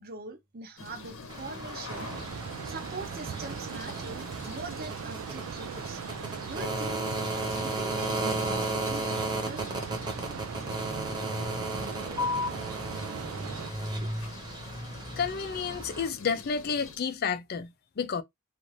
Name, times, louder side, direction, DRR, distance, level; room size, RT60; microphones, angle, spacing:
voice 1, 0.0-2.1 2.6-6.0 6.4-7.1 7.3-9.7, right 3 dB, 45° right, 0.7 m, -42 dB
sound 1, 0.8-17.0, left 4 dB, 65° left, 0.8 m, -46 dB
sound 2, 1.3-16.1, right 1 dB, 20° right, 0.9 m, -35 dB
sound 3, 1.9-13.7, right 7 dB, 70° right, 0.3 m, -39 dB
voice 2, 15.2-18.2, left 6 dB, 45° left, 0.4 m, -31 dB
2.5 x 2.5 x 3.1 m
head